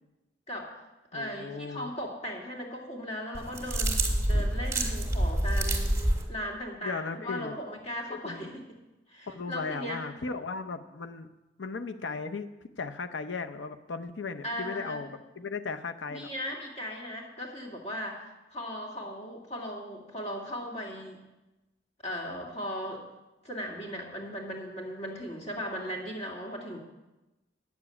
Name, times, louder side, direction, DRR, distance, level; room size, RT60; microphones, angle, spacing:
voice 1, 0.5-0.8 1.1-5.9 6.3-8.6 9.1-10.1 14.4-15.0 16.1-21.2 22.0-23.1 23.4-26.8, equal, 35° left, -1 dB, 2.3 m, -37 dB
voice 2, 1.1-1.9 6.8-7.6 8.1-8.5 9.3-11.3 11.6-12.5 12.8-16.3 26.7-26.8, left 4 dB, 85° left, 9 dB, 0.7 m, -36 dB
sound 1, 3.3-6.2, right 1 dB, 15° right, 1.8 m, -27 dB
9.5 x 7.1 x 8.6 m, 1.0 s
head